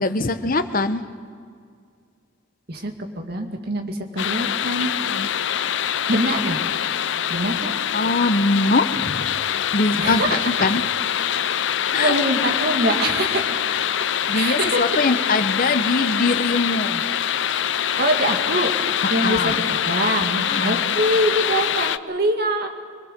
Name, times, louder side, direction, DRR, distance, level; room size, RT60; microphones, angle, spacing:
voice 1, 0.0-1.0 5.1-5.3 7.9-9.3 9.7-10.8 11.9-12.1 12.4-12.5 14.3-17.0 19.2-19.6 20.5-20.8, left 3 dB, 45° left, 10 dB, 1.0 m, -22 dB
voice 2, 2.7-4.9 6.1-6.7 7.3-7.7 10.0-10.7 11.9-13.7 14.3-15.0 15.8-15.9 18.0-22.7, right 1 dB, 55° right, 4 dB, 2.2 m, -24 dB
sound 1, 4.2-22.0, left 9 dB, 65° left, 0.5 m, -24 dB
25.5 x 21.0 x 6.7 m, 2.2 s
head